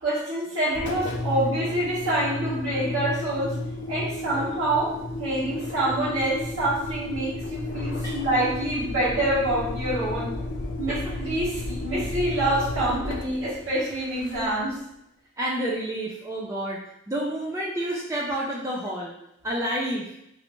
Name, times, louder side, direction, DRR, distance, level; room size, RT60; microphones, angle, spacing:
voice 1, 0.0-3.5 3.9-4.9 5.2-10.3 10.8-14.8, right 1 dB, 80° right, -11 dB, 1.1 m, -26 dB
Engine, 0.7-14.7, left 2 dB, 60° left, 0.4 m, -33 dB
voice 2, 15.4-16.8 17.1-19.1 19.4-20.1, right 1 dB, 15° right, -4 dB, 0.3 m, -29 dB
3.2 x 2.7 x 2.9 m, 0.79 s
head